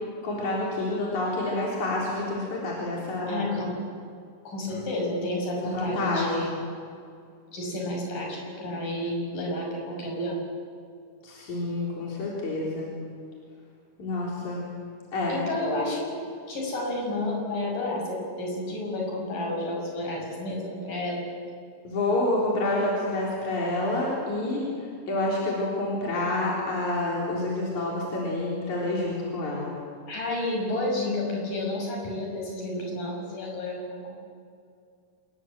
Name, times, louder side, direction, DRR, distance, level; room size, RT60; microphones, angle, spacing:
voice 1, 0.2-3.6 5.6-6.5 11.2-12.9 14.0-14.6 15.1-15.4 21.8-24.6 25.1-29.7, left 2 dB, 60° left, -5 dB, 5.3 m, -28 dB
voice 2, 3.3-3.8 4.5-6.5 7.5-10.4 15.3-16.2 16.5-21.2 30.1-34.2, left 1 dB, 75° left, 0 dB, 7.7 m, -31 dB
27.0 x 21.5 x 7.6 m, 2.3 s
omnidirectional pair, 3.8 m